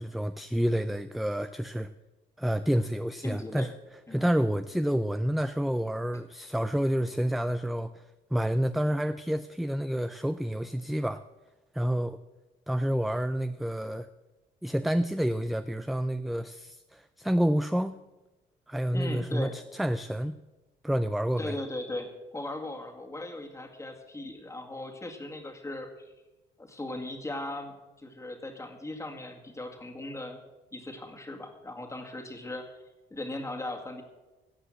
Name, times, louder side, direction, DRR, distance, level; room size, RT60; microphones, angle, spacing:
voice 1, 0.0-1.9 2.4-3.7 4.1-8.1 8.3-11.2 11.7-12.2 12.7-14.1 14.6-18.0 18.7-20.4 20.8-21.6, equal, ahead, 11 dB, 0.4 m, -29 dB
voice 2, 3.2-3.7 4.1-4.2 18.9-19.5 21.4-25.9 26.6-30.4 30.7-32.8 33.1-34.0, left 2 dB, 15° left, 3 dB, 2.0 m, -38 dB
16.5 x 5.5 x 7.5 m, 1.1 s
cardioid pair, 95°, 18 cm